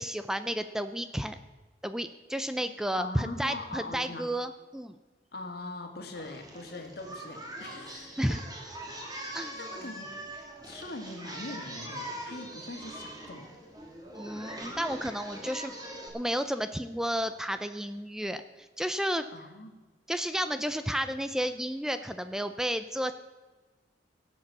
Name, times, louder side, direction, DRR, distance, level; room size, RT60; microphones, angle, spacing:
voice 1, 0.0-1.4 1.8-5.0 8.2-8.4 9.3-9.6 14.1-15.7 16.1-18.4 18.8-19.2 20.1-23.1, equal, 5° right, 10 dB, 0.4 m, -32 dB
voice 2, 3.0-4.3 5.3-8.4 9.2-13.5 19.3-19.8, left 2 dB, 60° left, 4 dB, 1.9 m, -42 dB
Singing, 6.1-16.1, right 1 dB, 25° right, 2.7 m, -42 dB
17.0 x 7.4 x 7.2 m, 1.3 s
head